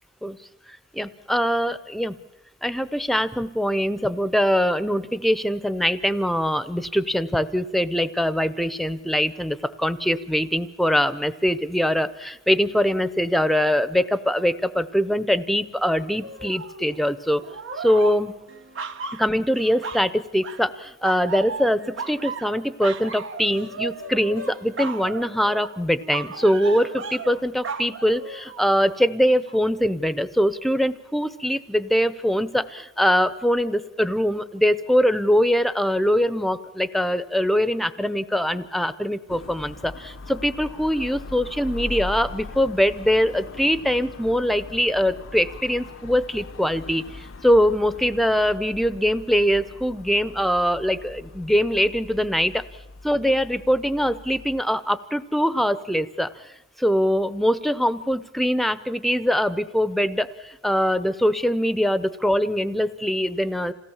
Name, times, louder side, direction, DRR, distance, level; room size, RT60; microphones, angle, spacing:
voice 1, 0.9-2.2 2.6-17.4 17.8-18.3 19.1-52.6 53.0-56.3 56.8-63.7, equal, ahead, 14 dB, 0.7 m, -23 dB
sound 1, 16.2-17.0 17.4-20.1 20.4-20.7 21.0-28.9 29.5-29.6, right 4 dB, 70° right, 1.0 m, -36 dB
sound 2, 39.3-54.6, left 3 dB, 85° left, 0.8 m, -40 dB
27.0 x 17.5 x 7.2 m, 0.98 s
head